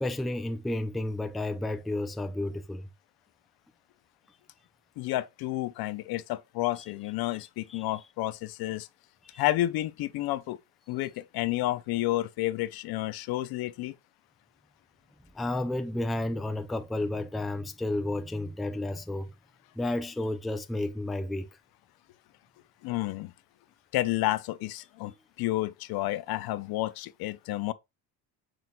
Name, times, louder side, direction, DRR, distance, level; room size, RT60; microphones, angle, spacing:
voice 1, 0.0-2.9 7.7-7.8 9.3-9.4 15.3-19.3 19.8-21.6 25.0-25.1, left 1 dB, ahead, 0.3 m, -32 dB
voice 2, 5.0-8.9 9.4-10.6 10.9-13.9 22.8-23.3 23.9-27.7, left 16 dB, 70° left, 0.5 m, -30 dB
6.0 x 3.7 x 2.2 m
cardioid pair, 95°, 38 cm